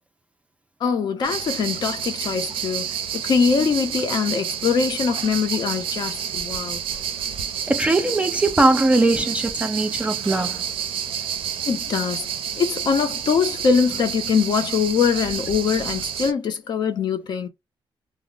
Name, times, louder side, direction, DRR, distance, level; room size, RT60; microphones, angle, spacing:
voice 1, 0.8-6.8 11.7-12.3 12.6-17.5, left 6 dB, 50° left, 0.5 m, -23 dB
sound 1, 1.2-16.3, right 8 dB, 75° right, 0.4 m, -29 dB
voice 2, 7.7-10.6, right 2 dB, 15° right, 0.3 m, -20 dB
2.0 x 2.0 x 3.6 m
wide cardioid pair, 165°, 9 cm